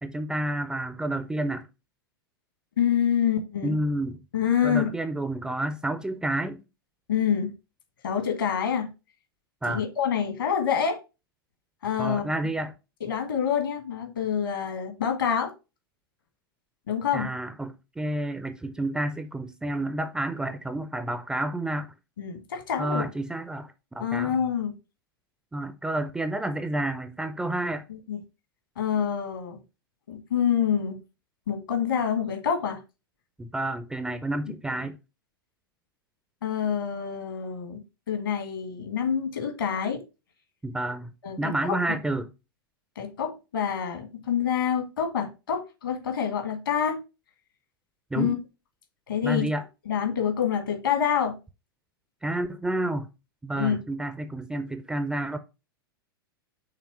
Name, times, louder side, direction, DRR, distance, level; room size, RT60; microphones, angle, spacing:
voice 1, 0.0-1.7 3.6-4.2 4.6-6.6 9.6-9.8 12.0-12.7 17.1-21.9 22.8-24.3 25.5-27.8 33.4-35.0 40.6-42.3 48.1-48.4 49.2-49.6 52.2-53.1 53.4-55.4, right 1 dB, 5° right, 0.4 m, -30 dB
voice 2, 2.8-3.8 4.3-4.9 7.1-7.5 8.0-8.9 9.7-11.0 11.8-12.2 13.0-15.5 16.9-17.3 22.2-23.0 24.0-24.7 27.9-28.2 28.8-29.6 30.1-31.0 31.5-32.8 36.4-40.0 41.2-41.8 42.9-47.0 48.1-48.4 49.1-49.5 49.8-51.4 53.5-53.8, left 8 dB, 65° left, 1.6 m, -27 dB
5.8 x 3.5 x 4.7 m
figure-of-eight pair, 95°, 12 cm